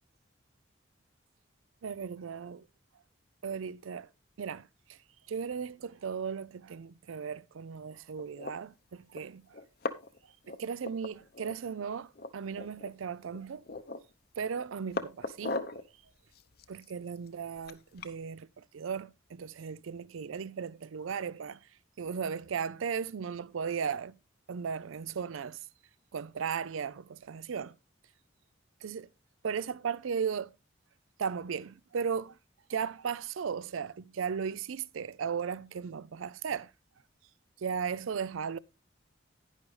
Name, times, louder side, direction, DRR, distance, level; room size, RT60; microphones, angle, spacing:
voice 1, 1.8-2.7 3.4-4.1 4.4-5.0 5.3-9.4 10.5-13.6 14.4-15.6 16.7-21.7 22.0-24.2 24.5-25.7 26.1-27.7 28.8-29.1 29.4-30.5 31.2-32.4 32.7-36.7 37.6-38.6, right 6 dB, 90° right, 0.4 m, -36 dB
sound 1, 8.2-8.5 9.2-9.3 9.5-10.2 10.4-11.5 11.8-11.9 12.2-12.9 13.3-14.1 14.6-15.8 16.3-18.2, left 3 dB, 50° left, 0.7 m, -38 dB
11.0 x 9.9 x 3.2 m
head